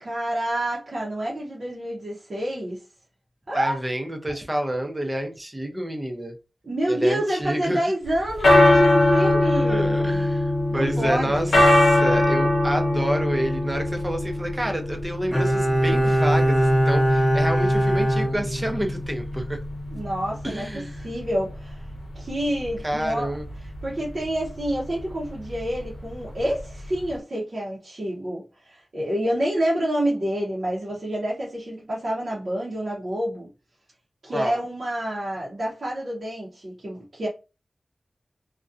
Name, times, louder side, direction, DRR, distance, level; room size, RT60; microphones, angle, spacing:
voice 1, 0.0-2.8 3.5-3.8 6.6-10.0 10.7-11.6 19.9-21.8 22.1-23.3 23.8-33.5 34.2-37.3, right 1 dB, 55° right, 0.7 m, -28 dB
voice 2, 3.5-6.4 6.9-7.8 9.7-19.6 20.4-21.1 22.8-23.4 34.3-34.6, right 1 dB, 15° right, 0.5 m, -29 dB
sound 1, 8.1-27.1, left 1 dB, 85° left, 0.7 m, -23 dB
Bowed string instrument, 15.3-19.1 19.4-19.5, equal, 5° left, 0.9 m, -21 dB
2.5 x 2.1 x 2.4 m
wide cardioid pair, 95°, 0 cm